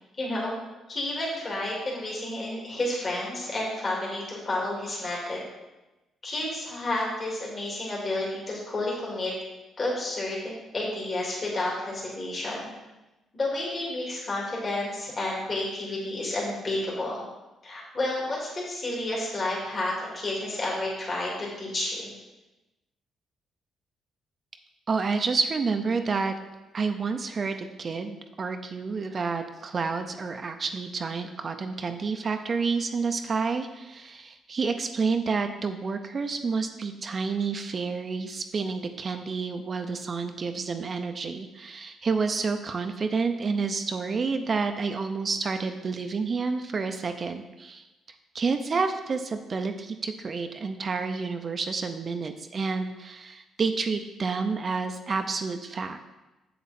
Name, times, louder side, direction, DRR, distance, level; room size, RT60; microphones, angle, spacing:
voice 1, 0.2-0.6 0.9-5.4 6.2-9.3 9.8-12.7 13.3-17.2 17.6-22.1, left 2 dB, 40° left, -4 dB, 2.6 m, -31 dB
voice 2, 24.9-26.4 26.7-47.9 48.3-56.0, right 4 dB, 40° right, 6 dB, 0.6 m, -29 dB
7.6 x 7.1 x 4.3 m, 1.0 s
cardioid pair, 90°, 0 cm